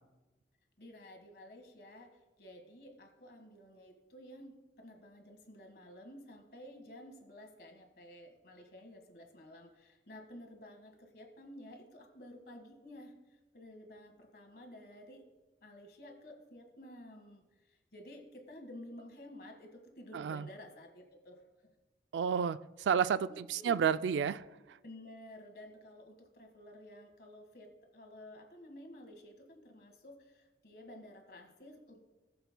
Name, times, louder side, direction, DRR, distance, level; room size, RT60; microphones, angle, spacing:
voice 1, 0.8-2.1 2.4-15.2 15.6-21.4 23.3-23.8 24.8-32.0, left 1 dB, 60° left, 1.6 m, -52 dB
voice 2, 20.1-20.5 22.1-24.4, right 7 dB, 90° right, 0.3 m, -31 dB
19.0 x 6.8 x 2.2 m
head